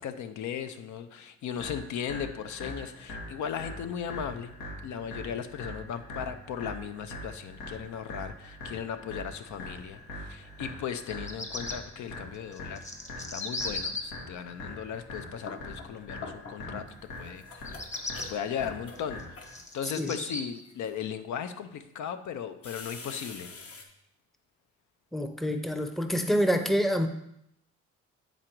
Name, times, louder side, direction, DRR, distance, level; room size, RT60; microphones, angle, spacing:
voice 1, 0.0-4.5 4.8-12.8 13.2-16.9 17.2-17.7 18.3-23.5, left 8 dB, 70° left, 10 dB, 0.6 m, -37 dB
sound 1, 1.6-19.6, left 2 dB, 90° left, 2.2 m, -42 dB
Bird vocalization bird call bird song, 10.9-11.8 12.5-14.0 17.5-18.3 19.0-20.4, left 2 dB, 25° left, 1.0 m, -36 dB
sound 2, 15.1-17.0 17.2-19.8 20.5-20.9 21.6-21.7 22.6-23.8, left 4 dB, 50° left, 1.1 m, -45 dB
voice 2, 25.1-27.1, equal, ahead, 8 dB, 0.6 m, -27 dB
8.9 x 3.9 x 4.5 m, 0.77 s
cardioid pair, 90°, 30 cm